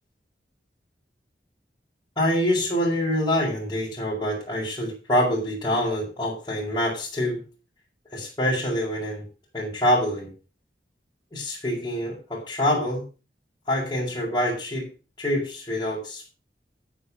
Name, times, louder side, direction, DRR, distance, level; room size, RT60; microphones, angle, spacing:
voice 1, 2.2-7.4 8.1-9.2 9.5-10.3 11.3-13.0 13.7-14.9 15.2-16.3, equal, 20° left, -9 dB, 5.4 m, -25 dB
9.6 x 8.9 x 6.3 m, 0.33 s
head